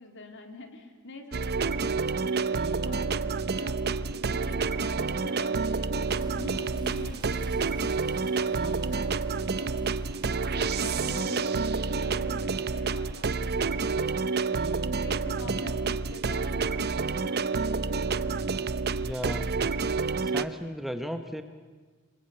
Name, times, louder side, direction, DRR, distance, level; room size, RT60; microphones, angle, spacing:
voice 1, 0.0-9.9 10.2-14.7 15.0-18.5 19.0-19.8, left 2 dB, 60° left, 5 dB, 3.3 m, -45 dB
sound 1, 1.3-20.5, right 4 dB, 50° right, 0.8 m, -29 dB
sound 2, 6.1-11.7, right 1 dB, 20° right, 1.5 m, -47 dB
voice 2, 19.0-19.5 20.2-21.4, equal, ahead, 7 dB, 1.0 m, -35 dB
27.5 x 21.5 x 9.0 m, 1.4 s
head